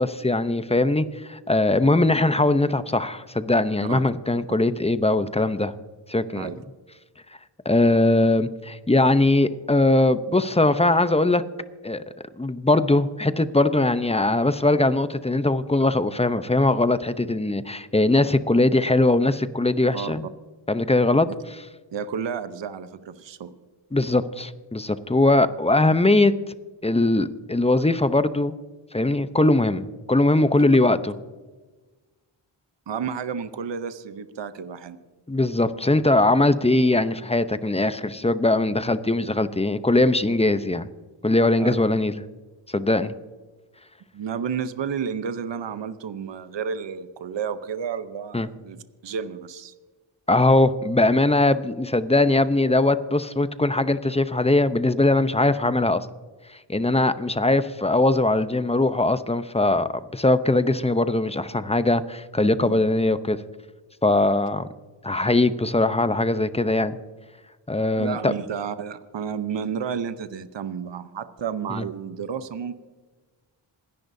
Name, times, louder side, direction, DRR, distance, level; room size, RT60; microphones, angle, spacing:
voice 1, 0.0-5.7 6.1-6.5 7.6-11.4 11.8-12.0 12.4-20.3 20.7-21.3 23.9-26.3 26.8-28.6 28.9-31.1 35.3-40.9 41.2-42.2 42.7-43.1 48.3-48.5 50.3-56.1 56.7-63.4 64.0-64.7 65.0-67.0 67.7-68.3 71.8-71.9, left 2 dB, 15° left, 12 dB, 0.7 m, -21 dB
voice 2, 21.9-23.5 32.9-35.0 41.6-41.7 44.1-49.7 62.6-62.8 68.0-72.7, right 7 dB, 60° right, 12 dB, 0.9 m, -31 dB
27.0 x 10.5 x 2.7 m, 1.3 s
cardioid pair, 45°, 49 cm